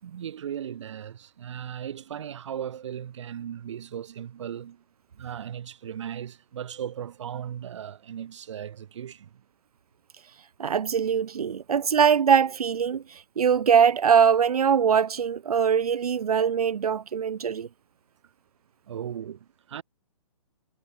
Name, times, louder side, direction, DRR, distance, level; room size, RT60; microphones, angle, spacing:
voice 1, 0.0-4.8 5.2-9.3 18.9-19.8, right 9 dB, 50° right, 5.7 m, -37 dB
voice 2, 10.6-17.7, right 7 dB, 80° right, 0.9 m, -22 dB
hypercardioid pair, 160°, 19 cm